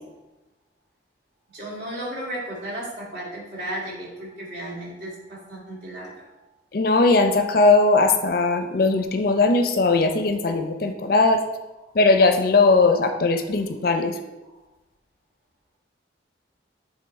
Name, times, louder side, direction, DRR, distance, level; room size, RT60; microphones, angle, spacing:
voice 1, 1.5-6.1, right 1 dB, 70° right, -5 dB, 2.0 m, -34 dB
voice 2, 6.7-11.5 11.9-14.2, left 3 dB, 50° left, 7 dB, 0.5 m, -19 dB
7.6 x 3.0 x 4.1 m, 1.1 s
head